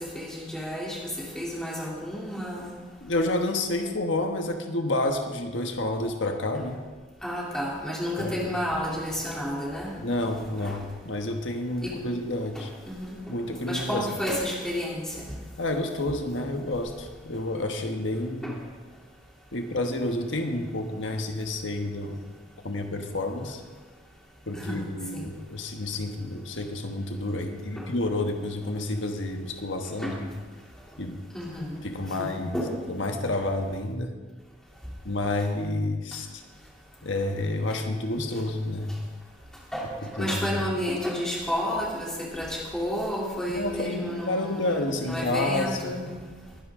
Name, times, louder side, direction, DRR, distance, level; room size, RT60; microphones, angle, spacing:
voice 1, 0.1-1.0 1.3-2.7 7.2-9.9 10.6-10.8 11.8-11.9 12.9-13.2 13.7-15.3 18.4-18.5 24.5-25.2 27.8-27.9 30.0-30.1 31.3-31.8 32.2-32.3 32.5-32.7 39.7-39.9 40.1-46.1, equal, 5° left, -5 dB, 3.1 m, -31 dB
voice 2, 3.0-6.8 8.2-8.3 10.0-12.7 13.3-14.1 15.6-18.6 19.5-22.2 22.6-23.6 24.5-30.3 31.0-31.2 31.8-32.5 32.9-34.1 35.0-36.4 37.0-38.9 40.2-40.6 43.5-46.0, left 2 dB, 90° left, 4 dB, 1.4 m, -29 dB
22.0 x 10.5 x 3.8 m, 1.4 s
head